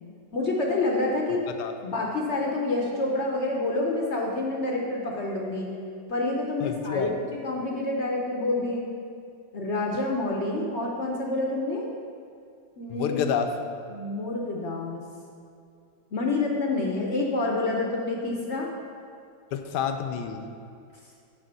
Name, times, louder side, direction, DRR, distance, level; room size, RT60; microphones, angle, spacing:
voice 1, 0.3-1.4 1.8-5.7 6.1-7.1 7.4-8.9 9.5-11.9 12.8-13.2 13.9-15.0 16.1-18.7, left 2 dB, 55° left, -1 dB, 0.8 m, -28 dB
voice 2, 6.6-7.2 12.9-13.5 19.5-20.4, left 7 dB, 70° left, 6 dB, 1.1 m, -29 dB
10.0 x 3.4 x 6.8 m, 2.5 s
omnidirectional pair, 2.0 m